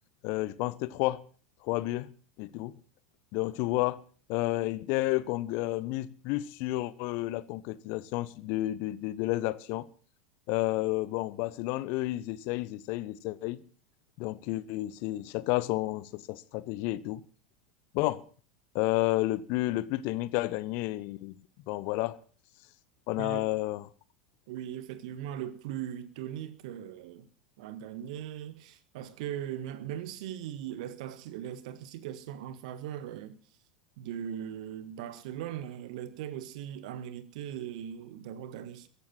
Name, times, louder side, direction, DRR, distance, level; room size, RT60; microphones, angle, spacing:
voice 1, 0.2-1.2 1.6-2.1 2.4-2.8 3.3-4.0 4.3-9.9 10.5-13.6 14.2-17.2 17.9-18.2 18.7-21.4 21.7-22.2 23.1-23.9, left 18 dB, 50° left, 0.9 m, -31 dB
voice 2, 24.5-27.3 27.6-33.4 34.0-38.9, right 10 dB, 60° right, 1.7 m, -39 dB
15.0 x 10.5 x 7.7 m
figure-of-eight pair, 85°, 4 cm